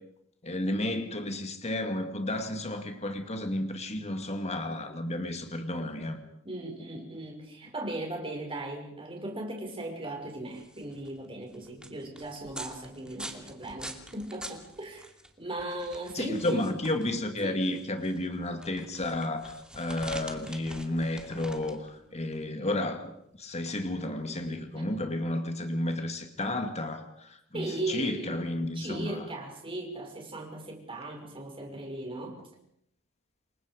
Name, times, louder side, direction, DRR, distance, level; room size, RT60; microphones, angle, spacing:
voice 1, 0.4-6.2 16.1-23.1 23.4-29.3, left 1 dB, 30° left, 6 dB, 2.3 m, -32 dB
voice 2, 6.4-15.1 15.4-16.7 17.4-17.6 24.7-24.9 27.5-28.4 28.7-32.4, right 1 dB, 25° right, 1 dB, 5.7 m, -37 dB
sound 1, 10.4-24.9, right 1 dB, 5° right, 2.5 m, -46 dB
28.0 x 23.5 x 5.1 m, 0.73 s
head